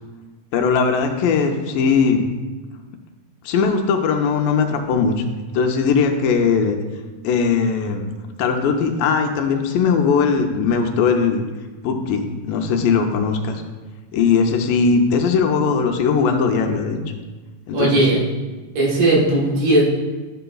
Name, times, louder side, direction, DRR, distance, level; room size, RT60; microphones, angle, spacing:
voice 1, 0.5-2.3 3.4-5.2 5.5-6.8 7.2-8.0 8.4-11.4 11.8-13.6 14.1-17.0 17.7-18.2, left 5 dB, 90° left, 3 dB, 2.3 m, -19 dB
voice 2, 17.7-18.2 18.8-19.8, right 2 dB, 75° right, -4 dB, 3.0 m, -17 dB
12.0 x 6.7 x 2.3 m, 1.3 s
omnidirectional pair, 3.9 m